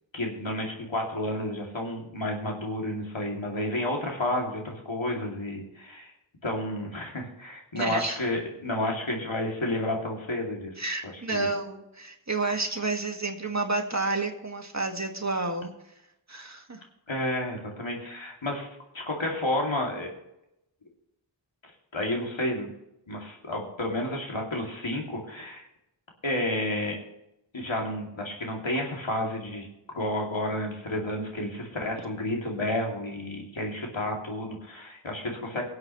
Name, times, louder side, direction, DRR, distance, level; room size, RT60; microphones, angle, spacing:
voice 1, 0.1-6.1 6.4-10.7 11.0-11.5 17.1-18.7 18.9-20.1 21.9-22.7 23.1-25.6 26.2-27.0 27.5-29.7 29.9-35.6, left 1 dB, 80° left, 0 dB, 2.6 m, -31 dB
voice 2, 7.7-8.2 10.8-15.7 16.3-16.8, right 3 dB, 35° right, 3 dB, 1.8 m, -30 dB
23.0 x 7.9 x 3.1 m, 0.86 s
wide cardioid pair, 45°, 46 cm